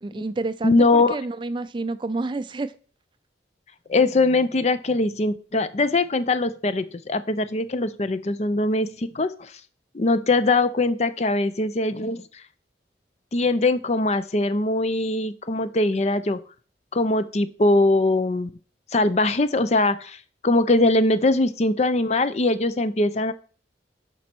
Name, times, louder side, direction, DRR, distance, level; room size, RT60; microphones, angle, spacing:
voice 1, 0.0-2.7, right 3 dB, 25° right, 13 dB, 0.4 m, -29 dB
voice 2, 0.6-1.2 3.9-9.5 9.9-12.2 13.3-16.4 16.9-18.5 18.9-20.2 20.4-23.3, left 2 dB, 35° left, 13 dB, 0.5 m, -21 dB
7.5 x 5.3 x 6.0 m, 0.41 s
head